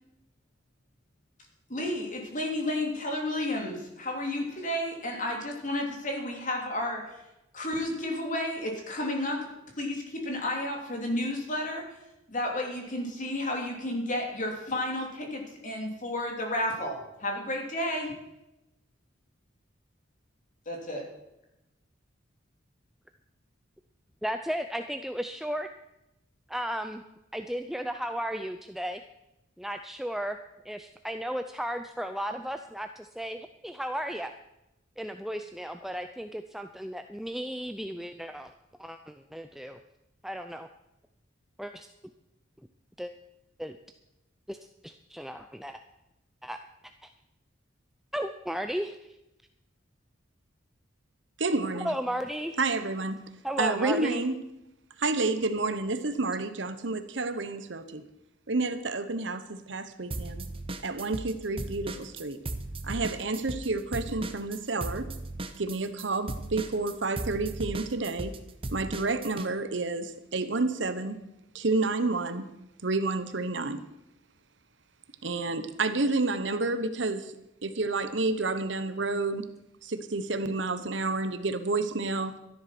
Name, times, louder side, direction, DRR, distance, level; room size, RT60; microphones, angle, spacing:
voice 1, 1.7-7.1 7.5-9.5 9.8-11.9 12.3-18.1 20.6-21.1, left 1 dB, 45° left, 1 dB, 3.2 m, -32 dB
voice 2, 24.2-25.7 26.5-27.0 27.3-29.0 29.6-30.4 30.6-34.3 35.0-38.5 38.8-39.8 40.2-40.7 41.6-41.9 43.0-43.1 43.6-43.8 44.5-44.6 44.8-45.8 46.4-46.6 48.1-49.0 51.8-52.6 53.4-54.2, equal, ahead, 7 dB, 0.5 m, -34 dB
voice 3, 51.4-51.9 52.6-53.2 53.6-54.4 55.0-58.0 58.5-60.5 60.8-62.4 62.8-65.1 65.6-68.4 68.7-71.2 71.5-72.5 72.8-73.8 75.2-77.3 77.6-79.5 79.8-82.4, right 3 dB, 70° right, 11 dB, 1.1 m, -30 dB
sound 1, 60.1-61.3 61.6-69.5, right 2 dB, 30° right, 1.1 m, -36 dB
13.0 x 11.0 x 6.0 m, 0.90 s
head